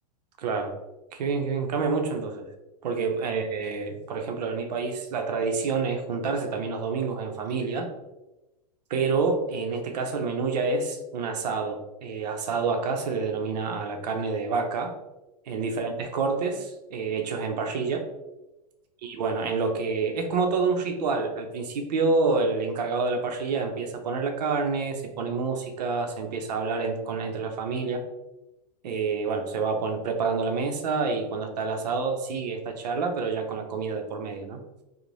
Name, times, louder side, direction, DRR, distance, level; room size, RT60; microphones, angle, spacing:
voice 1, 0.4-0.7 1.1-2.5 2.8-7.9 8.9-14.9 15.5-18.0 19.0-28.0 28.8-34.6, right 4 dB, 90° right, 4 dB, 0.6 m, -28 dB
2.6 x 2.1 x 3.1 m, 1.0 s
supercardioid pair, 170°, 20 cm